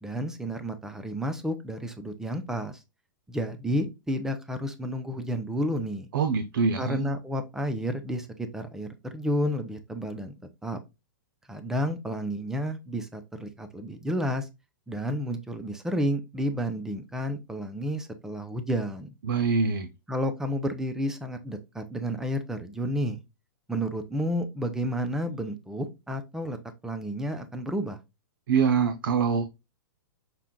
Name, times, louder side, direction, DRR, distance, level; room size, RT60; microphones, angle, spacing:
voice 1, 0.0-2.8 3.3-6.1 6.8-10.4 10.6-10.8 11.5-14.5 14.9-19.1 20.1-23.2 23.7-26.6 26.8-28.0, equal, 5° right, 0.5 m, -31 dB
voice 2, 6.1-7.1 19.2-19.9 28.5-29.5, right 5 dB, 80° right, 0.7 m, -24 dB
5.8 x 2.4 x 3.7 m
hypercardioid pair, 145°, 11 cm